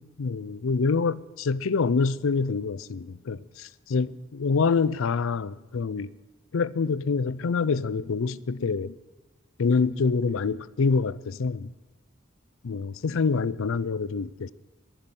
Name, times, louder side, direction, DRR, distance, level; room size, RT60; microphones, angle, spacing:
voice 1, 0.0-6.1 6.5-8.9 9.6-11.7 12.6-14.5, left 4 dB, 70° left, 0.5 m, -26 dB
12.0 x 10.5 x 9.8 m
head